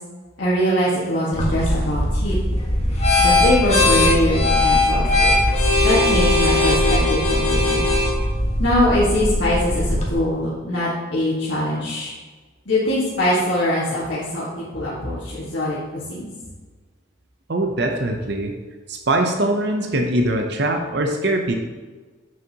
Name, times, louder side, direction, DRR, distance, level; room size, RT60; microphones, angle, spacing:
voice 1, 0.4-2.4 3.2-5.4 5.8-7.9 8.6-9.8 10.1-12.1 12.7-16.3, left 1 dB, 65° left, -9 dB, 1.7 m, -22 dB
sound 1, 1.3-10.1, left 2 dB, 35° left, 1.5 m, -19 dB
voice 2, 17.5-18.5 18.9-21.5, right 1 dB, 55° right, 3 dB, 0.7 m, -22 dB
9.0 x 6.4 x 2.9 m, 1.4 s
head